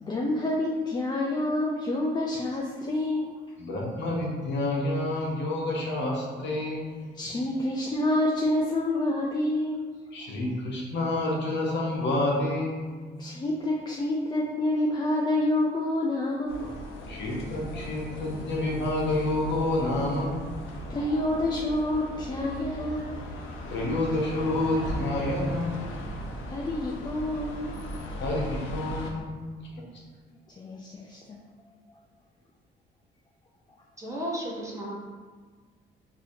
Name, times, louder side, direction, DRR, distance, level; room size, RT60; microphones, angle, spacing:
voice 1, 0.0-3.4 7.1-9.9 13.2-16.8 17.1-17.2 20.6-23.2 26.5-27.8 30.5-31.4 31.9-32.0, left 1 dB, 20° left, -3 dB, 0.4 m, -28 dB
voice 2, 3.6-7.0 10.1-13.1 17.1-20.5 23.7-25.9 28.2-29.5 29.8-29.9, left 2 dB, 65° left, -3 dB, 1.0 m, -29 dB
sound 1, 16.5-29.1, equal, 85° left, 0.6 m, -38 dB
voice 3, 34.0-35.0, equal, 15° right, -3 dB, 0.8 m, -33 dB
4.0 x 2.8 x 2.7 m, 1.5 s
cardioid pair, 90°, 20 cm